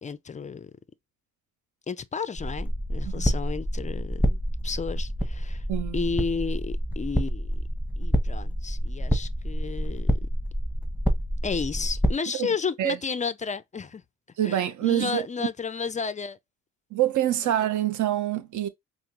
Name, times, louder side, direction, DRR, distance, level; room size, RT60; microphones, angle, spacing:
voice 1, 0.0-0.7 1.9-5.6 5.9-7.5 8.0-10.3 11.4-14.0 14.4-16.4, left 5 dB, 25° left, 0.3 m, -32 dB
sound 1, 2.4-12.1, equal, 5° right, 1.1 m, -28 dB
voice 2, 5.7-6.0 12.4-12.5 12.8-13.0 14.4-15.2 16.9-18.7, right 12 dB, 65° right, 0.7 m, -25 dB
5.0 x 2.0 x 2.9 m
cardioid pair, 80°, 33 cm